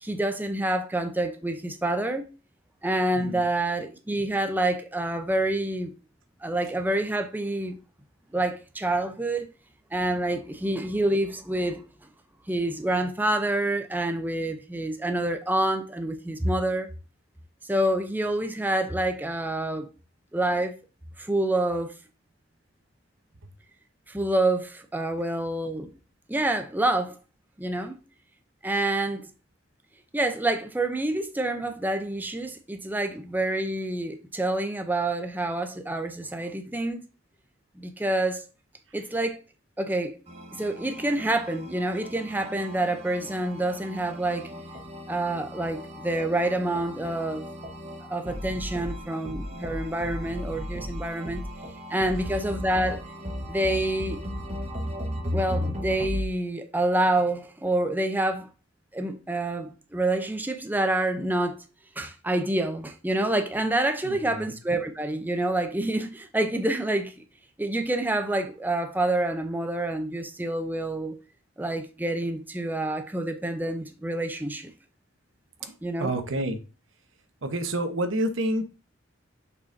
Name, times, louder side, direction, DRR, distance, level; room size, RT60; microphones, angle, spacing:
voice 1, 0.0-2.3 2.8-5.9 6.4-7.8 8.3-9.5 9.9-11.8 12.5-16.9 17.6-19.9 20.3-20.7 21.2-21.9 24.1-25.9 26.3-27.2 27.6-28.0 28.6-29.3 30.1-37.0 37.8-38.5 38.9-39.4 39.8-40.2 40.5-44.5 45.1-47.5 48.1-51.4 51.9-53.0 53.5-54.2 55.3-58.5 58.9-61.6 62.0-67.2 67.6-71.1 71.6-74.7 75.8-76.1, right 1 dB, 10° right, 0.6 m, -27 dB
voice 2, 3.1-3.5 64.0-64.5 76.0-76.6 77.4-78.6, right 1 dB, 70° right, 1.0 m, -28 dB
sound 1, 40.3-56.2, equal, 35° right, 1.2 m, -36 dB
6.7 x 5.6 x 2.7 m
head